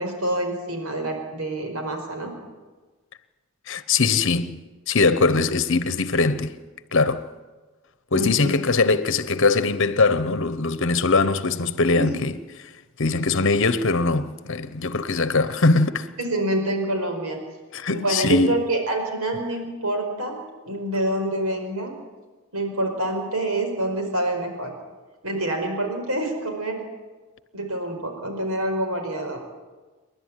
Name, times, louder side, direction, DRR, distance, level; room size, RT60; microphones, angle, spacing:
voice 1, 0.0-2.3 8.1-8.5 11.9-12.2 16.2-17.4 17.9-20.4 20.6-22.0 22.5-24.7 25.2-26.8 27.5-29.4, right 1 dB, 80° right, 5.1 m, -26 dB
voice 2, 3.7-6.6 6.9-7.3 8.1-12.3 12.6-12.7 13.0-16.1 17.7-18.6, left 3 dB, 55° left, 1.0 m, -21 dB
28.0 x 11.5 x 9.8 m
head